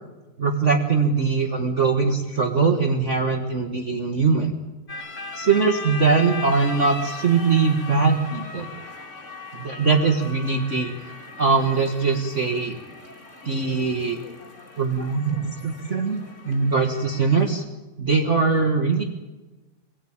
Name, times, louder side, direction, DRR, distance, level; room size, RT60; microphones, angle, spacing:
voice 1, 0.4-4.5 5.3-8.7 9.6-10.9 11.4-12.8 13.4-14.2 14.8-17.6 18.0-19.0, right 4 dB, 55° right, 3 dB, 0.8 m, -21 dB
sound 1, 4.9-17.5, left 3 dB, 25° left, 2.0 m, -38 dB
26.0 x 18.0 x 8.8 m, 1.2 s
omnidirectional pair, 3.8 m